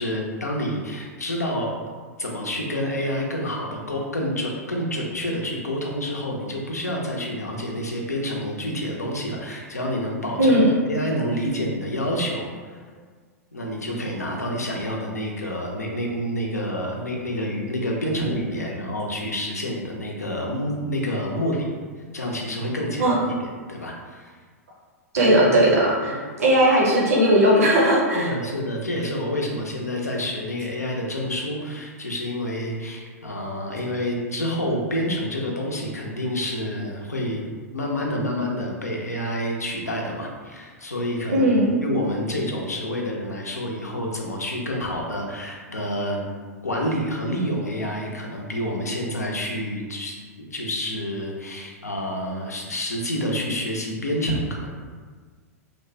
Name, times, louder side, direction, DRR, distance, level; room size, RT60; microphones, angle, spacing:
voice 1, 0.0-1.8 2.2-10.6 10.8-12.8 13.5-21.7 22.1-24.3 28.1-41.6 41.8-46.2 46.6-54.7, equal, 85° left, 0 dB, 0.5 m, -28 dB
voice 2, 10.4-10.7 23.0-23.1 25.1-28.3 41.3-41.8, right 1 dB, 70° right, -4 dB, 0.7 m, -18 dB
2.8 x 2.1 x 2.6 m, 1.6 s
figure-of-eight pair, 100°, 8 cm